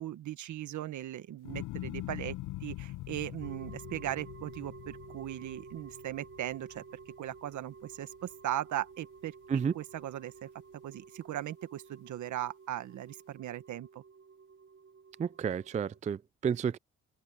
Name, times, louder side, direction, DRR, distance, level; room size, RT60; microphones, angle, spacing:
voice 1, 0.0-6.8 7.2-9.3 9.7-10.5 10.8-14.0, right 13 dB, 75° right, 1.5 m, -38 dB
sound 1, 1.4-7.8 8.2-8.8, left 17 dB, 90° left, 0.7 m, -43 dB
sound 2, 3.4-16.0, right 5 dB, 40° right, 1.1 m, -52 dB
voice 2, 15.2-16.8, right 7 dB, 25° right, 0.4 m, -31 dB
open air
cardioid pair, 90°, 30 cm